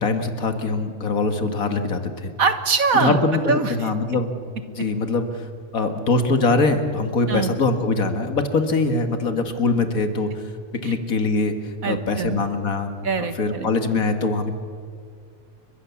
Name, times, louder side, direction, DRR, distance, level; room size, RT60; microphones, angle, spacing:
voice 1, 0.0-2.3 2.9-4.3 4.7-5.4 5.7-10.3 10.7-11.5 11.9-12.9 13.2-14.5, left 3 dB, 80° left, 7 dB, 2.3 m, -22 dB
voice 2, 2.4-3.2 3.5-3.9 7.3-7.6 10.8-10.9 11.8-12.5 13.0-14.0, right 5 dB, 85° right, 8 dB, 2.1 m, -23 dB
30.0 x 24.0 x 7.2 m, 2.1 s
omnidirectional pair, 1.4 m